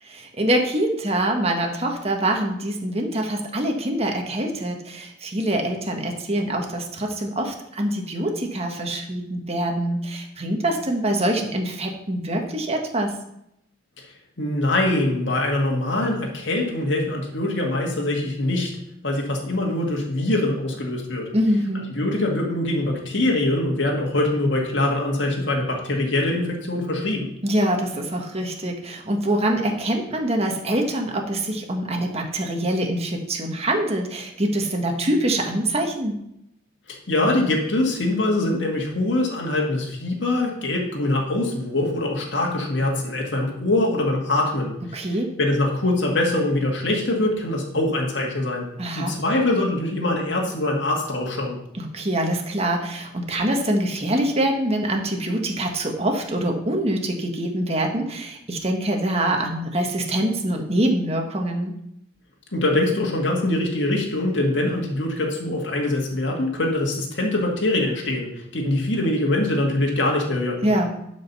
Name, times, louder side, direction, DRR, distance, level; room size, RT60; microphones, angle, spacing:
voice 1, 0.1-13.1 21.3-21.9 27.4-36.2 44.9-45.3 48.8-49.1 51.7-61.7 70.6-70.9, right 1 dB, 35° right, 2 dB, 1.6 m, -24 dB
voice 2, 14.4-18.7 19.0-21.3 22.0-27.3 36.9-45.1 45.4-48.7 49.0-51.6 62.5-70.6, left 2 dB, 75° left, -1 dB, 2.1 m, -23 dB
12.0 x 5.2 x 5.5 m, 0.78 s
head